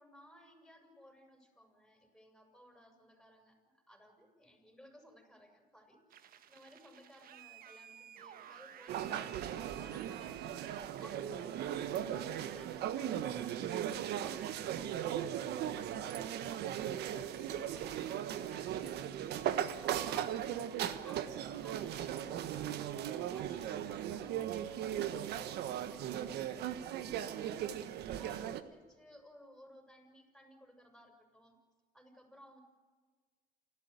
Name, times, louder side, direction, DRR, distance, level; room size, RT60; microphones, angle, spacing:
voice 1, 0.0-9.4 9.7-19.1 19.6-31.6 31.9-32.6, equal, ahead, 4 dB, 6.5 m, -59 dB
sound 1, 6.1-11.2, right 10 dB, 60° right, 1.3 m, -54 dB
sound 2, 8.9-28.6, right 10 dB, 75° right, 1.4 m, -38 dB
29.0 x 12.5 x 9.5 m, 1.5 s
cardioid pair, 110°, 17 cm